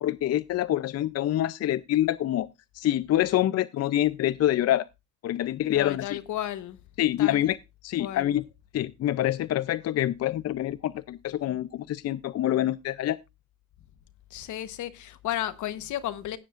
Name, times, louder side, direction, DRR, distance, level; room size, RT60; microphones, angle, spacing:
voice 1, 0.0-2.5 2.7-4.8 5.2-6.2 7.0-7.6 7.8-8.4 8.7-13.2, left 13 dB, 55° left, 0.5 m, -26 dB
voice 2, 5.7-6.8 7.2-7.6 8.0-8.4 14.3-16.4, left 12 dB, 80° left, 1.1 m, -33 dB
16.0 x 10.0 x 2.5 m
cardioid pair, 90°, 30 cm